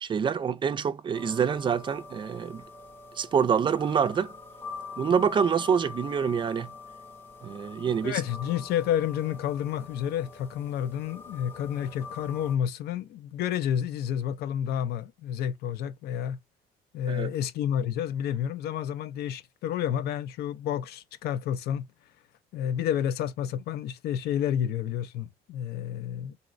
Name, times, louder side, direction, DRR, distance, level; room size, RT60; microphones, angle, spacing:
voice 1, 0.0-2.6 3.2-4.3 5.0-6.7 7.4-8.2 17.1-17.3, right 7 dB, 30° right, 0.3 m, -26 dB
sound 1, 1.1-12.6, left 4 dB, 10° left, 0.6 m, -44 dB
voice 2, 8.0-16.4 16.9-21.9 22.5-26.4, left 9 dB, 70° left, 0.4 m, -30 dB
3.9 x 2.0 x 2.4 m
cardioid pair, 110°, 17 cm